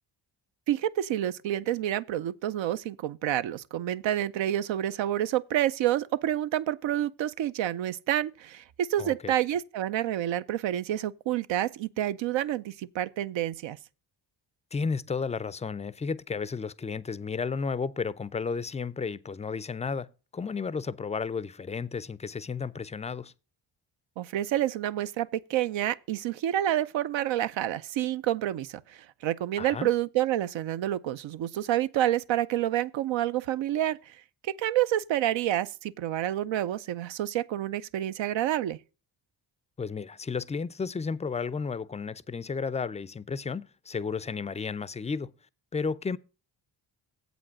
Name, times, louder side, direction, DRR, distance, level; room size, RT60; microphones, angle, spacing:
voice 1, 0.7-13.8 24.2-34.2 34.4-38.8, right 12 dB, 75° right, 0.6 m, -28 dB
voice 2, 9.0-9.3 14.7-23.3 29.6-29.9 39.8-45.3 45.7-46.2, left 5 dB, 15° left, 0.4 m, -33 dB
7.8 x 5.1 x 7.3 m
cardioid pair, 70°, 45 cm